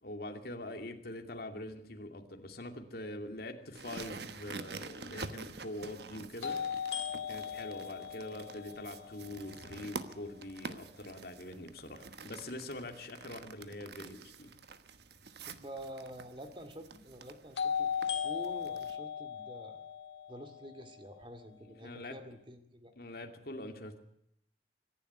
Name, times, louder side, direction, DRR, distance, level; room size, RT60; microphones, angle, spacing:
voice 1, 0.0-7.0 7.3-14.5 21.8-22.2 23.0-24.0, left 1 dB, 60° left, 4 dB, 2.5 m, -44 dB
sound 1, 3.7-19.0, right 4 dB, 65° right, 1.2 m, -48 dB
sound 2, 4.5-4.6 6.4-10.3 17.6-21.6, left 7 dB, 85° left, 1.8 m, -38 dB
voice 2, 15.5-19.8 20.3-22.9, equal, 30° right, 7 dB, 2.3 m, -48 dB
25.0 x 11.5 x 9.4 m, 0.76 s
head